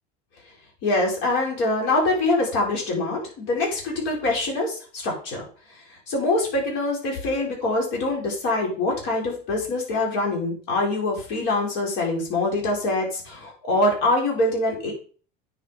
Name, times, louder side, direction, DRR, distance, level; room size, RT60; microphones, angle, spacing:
voice 1, 0.8-5.4 6.1-14.9, left 2 dB, 65° left, -1 dB, 6.0 m, -24 dB
9.1 x 7.8 x 5.6 m, 0.42 s
cardioid pair, 140°, 21 cm